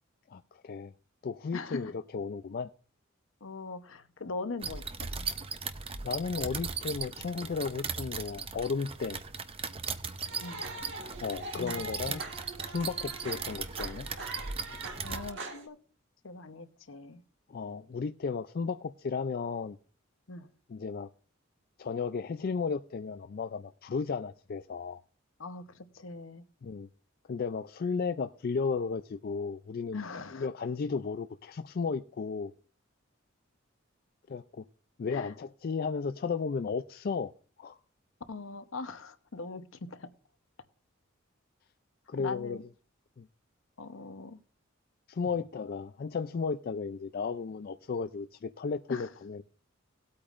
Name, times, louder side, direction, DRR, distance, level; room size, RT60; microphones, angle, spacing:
voice 1, 0.3-0.9 1.2-2.7 6.0-9.2 11.2-12.2 12.7-14.1 17.5-19.8 20.7-21.1 21.8-25.0 26.6-26.9 27.3-30.0 30.3-32.5 34.3-34.6 35.0-37.3 37.6-37.8 42.1-42.6 43.2-43.3 45.1-49.4, left 5 dB, 50° left, 0.4 m, -34 dB
voice 2, 1.5-1.9 3.4-5.1 10.4-10.6 11.5-12.3 15.0-15.8 16.2-17.2 20.3-20.5 25.4-26.4 29.9-30.5 35.1-35.3 38.3-40.1 42.2-42.6 43.8-44.4 48.9-49.1, left 3 dB, 75° left, 0.9 m, -41 dB
sound 1, 4.6-15.3, right 5 dB, 30° right, 0.7 m, -38 dB
sound 2, 10.3-15.7, right 2 dB, 65° right, 1.7 m, -42 dB
18.5 x 8.6 x 2.5 m
head